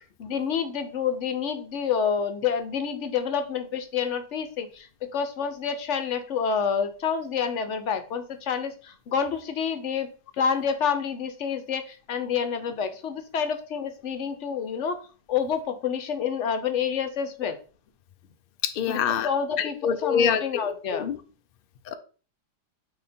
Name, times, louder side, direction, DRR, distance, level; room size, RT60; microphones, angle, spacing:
voice 1, 0.2-10.1 10.4-15.0 15.3-17.6 18.9-21.1, left 7 dB, 55° left, 9 dB, 0.9 m, -28 dB
voice 2, 18.6-19.3 19.6-21.2 21.9-22.0, left 7 dB, 85° left, 9 dB, 0.4 m, -26 dB
8.7 x 2.9 x 4.3 m, 0.38 s
omnidirectional pair, 1.8 m